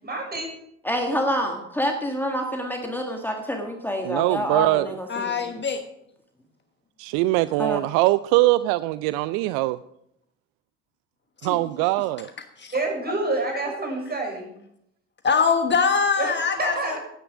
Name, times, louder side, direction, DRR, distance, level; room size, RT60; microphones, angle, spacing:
voice 1, 0.0-0.5 12.7-14.5 16.2-17.0, right 2 dB, 25° right, 1 dB, 6.2 m, -28 dB
voice 2, 0.8-5.5 7.6-7.8, equal, 5° left, 3 dB, 1.9 m, -27 dB
voice 3, 4.0-4.9 7.0-9.8 11.4-12.3, right 18 dB, 55° right, 16 dB, 0.5 m, -22 dB
voice 4, 5.1-5.8 11.4-11.6 12.6-12.7 15.2-17.0, left 5 dB, 30° left, 7 dB, 1.4 m, -23 dB
16.5 x 10.0 x 5.0 m, 0.75 s
figure-of-eight pair, 60°, 38 cm